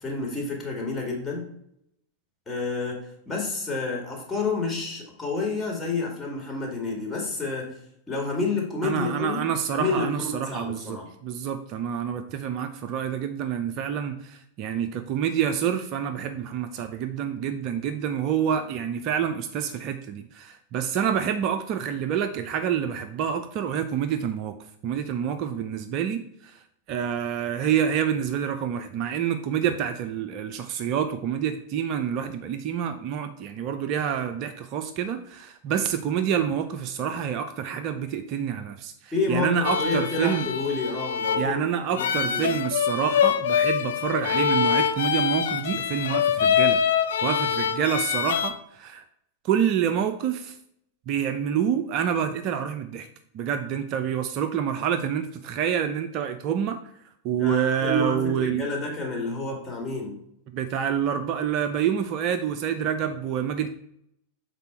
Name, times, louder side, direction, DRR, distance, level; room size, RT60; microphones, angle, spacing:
voice 1, 0.0-1.4 2.5-7.8 8.1-9.4 9.7-11.1 39.1-41.6 41.9-42.5 57.3-60.2, left 3 dB, 15° left, -2 dB, 2.1 m, -29 dB
voice 2, 8.8-24.5 24.8-26.6 26.9-40.5 41.4-46.8 47.2-49.0 49.4-50.6 51.1-53.1 53.3-56.8 57.2-58.6 60.5-63.7, right 8 dB, 40° right, 8 dB, 0.5 m, -27 dB
sound 1, 39.6-48.5, left 8 dB, 60° left, 0.5 m, -24 dB
6.6 x 4.1 x 4.5 m, 0.72 s
figure-of-eight pair, 90°, 0 cm